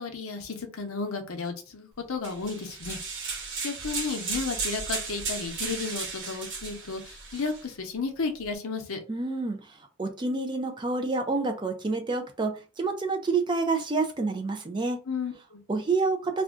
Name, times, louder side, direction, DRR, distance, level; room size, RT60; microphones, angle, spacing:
voice 1, 0.0-3.0 3.6-9.0 15.1-15.6, left 4 dB, 75° left, 5 dB, 0.7 m, -33 dB
sound 1, 2.2-7.6, right 4 dB, 55° right, 1.1 m, -35 dB
voice 2, 9.1-15.0 15.7-16.4, right 3 dB, 20° right, 5 dB, 0.4 m, -28 dB
2.5 x 2.2 x 3.6 m, 0.33 s
head